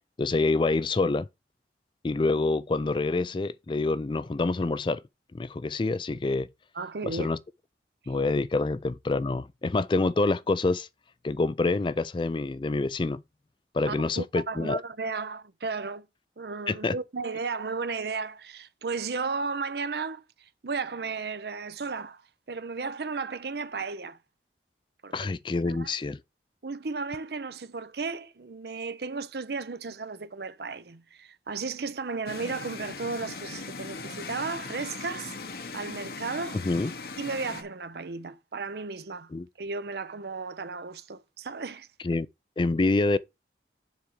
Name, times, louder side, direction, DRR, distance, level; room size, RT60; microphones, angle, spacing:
voice 1, 0.2-1.3 2.0-5.0 5.3-6.5 7.1-7.4 8.1-10.9 11.2-13.2 13.7-14.8 16.7-17.0 25.1-26.2 36.6-36.9 39.3-39.5 42.0-42.3 42.6-43.2, left 3 dB, 25° left, 0.3 m, -26 dB
voice 2, 6.7-7.3 8.0-8.1 13.9-16.1 16.4-22.2 22.5-24.2 25.0-25.3 25.6-25.9 26.6-35.4 35.7-36.6 37.2-39.3 39.6-41.9, right 4 dB, 65° right, 0.7 m, -34 dB
sound 1, 32.3-37.6, left 4 dB, 55° left, 0.9 m, -39 dB
7.3 x 3.5 x 6.4 m
head